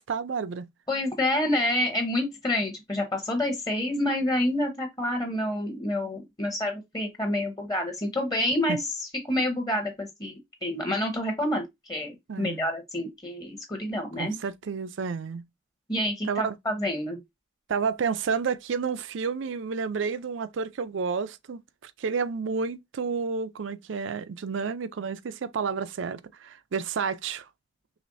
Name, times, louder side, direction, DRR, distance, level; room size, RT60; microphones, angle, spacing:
voice 1, 0.0-0.7 8.7-8.8 12.3-12.7 14.2-15.4 16.3-16.6 17.7-27.5, right 5 dB, 85° right, 0.4 m, -30 dB
voice 2, 0.9-8.8 9.1-14.4 15.9-17.2, left 1 dB, 20° left, 0.8 m, -28 dB
4.9 x 3.4 x 2.6 m
head